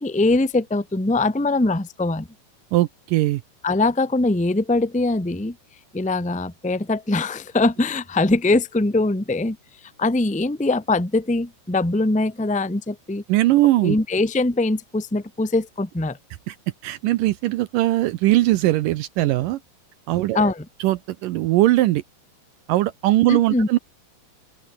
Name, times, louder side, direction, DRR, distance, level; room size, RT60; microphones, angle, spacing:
voice 1, 0.0-2.3 3.6-5.5 5.9-9.6 10.0-13.2 13.8-16.2 20.3-20.6 23.3-23.7, left 2 dB, 5° left, 1.1 m, -22 dB
voice 2, 2.7-3.4 13.3-14.0 16.5-16.6 16.8-19.6 20.1-20.4 20.8-22.0 22.7-23.8, right 16 dB, 80° right, 2.0 m, -20 dB
open air
omnidirectional pair, 4.6 m